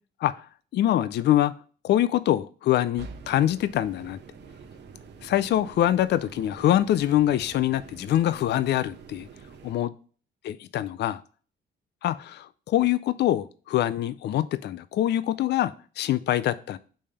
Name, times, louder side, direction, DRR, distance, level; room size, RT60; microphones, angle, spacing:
voice 1, 0.7-1.5 1.8-4.2 5.2-9.3 9.6-9.9 10.4-11.2 12.0-16.8, left 12 dB, 60° left, 15 dB, 0.4 m, -24 dB
sound 1, 3.0-9.8, right 5 dB, 60° right, 0.9 m, -46 dB
5.3 x 3.4 x 5.6 m, 0.41 s
cardioid pair, 90°, 20 cm